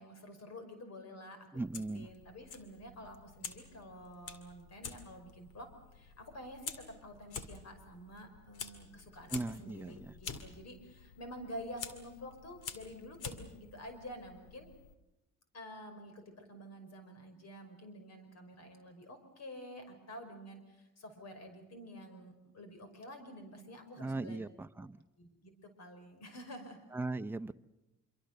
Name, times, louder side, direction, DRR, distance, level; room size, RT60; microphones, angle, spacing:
voice 1, 0.0-1.6 1.9-14.7 15.5-24.4 25.2-26.9, equal, 60° left, 8 dB, 5.4 m, -49 dB
Fire, 1.5-14.9, left 6 dB, 85° left, 2.2 m, -49 dB
voice 2, 1.5-2.1 9.3-10.1 24.0-25.0 26.9-27.5, right 2 dB, 5° right, 8 dB, 0.8 m, -38 dB
26.0 x 24.0 x 6.7 m, 0.96 s
cardioid pair, 90°, 30 cm